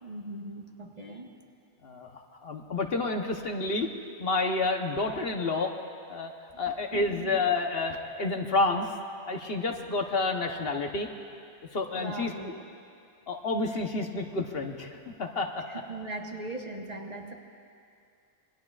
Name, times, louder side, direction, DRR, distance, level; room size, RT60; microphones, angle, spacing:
voice 1, 0.0-1.3 6.9-7.3 11.9-12.6 15.7-17.3, right 2 dB, 35° right, 1 dB, 1.3 m, -39 dB
voice 2, 1.8-3.9 4.2-5.7 6.1-6.3 6.6-8.9 9.3-11.1 11.7-12.3 13.3-15.6, left 3 dB, 60° left, 3 dB, 1.2 m, -29 dB
26.5 x 22.5 x 2.4 m, 2.4 s
omnidirectional pair, 1.2 m